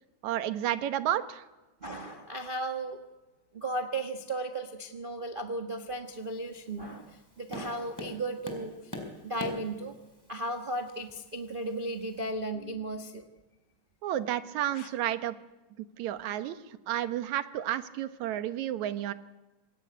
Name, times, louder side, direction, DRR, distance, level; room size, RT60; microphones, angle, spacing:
voice 1, 0.2-1.4 14.0-15.4 15.8-16.6 16.9-19.1, right 12 dB, 70° right, 11 dB, 2.3 m, -31 dB
voice 2, 1.8-3.0 3.5-8.9 9.2-9.9 10.3-13.2 14.7-14.9, right 2 dB, 50° right, 4 dB, 0.6 m, -35 dB
Tap, 6.1-12.3, left 1 dB, 5° left, 4.0 m, -45 dB
25.0 x 19.0 x 9.5 m, 1.1 s
omnidirectional pair, 3.5 m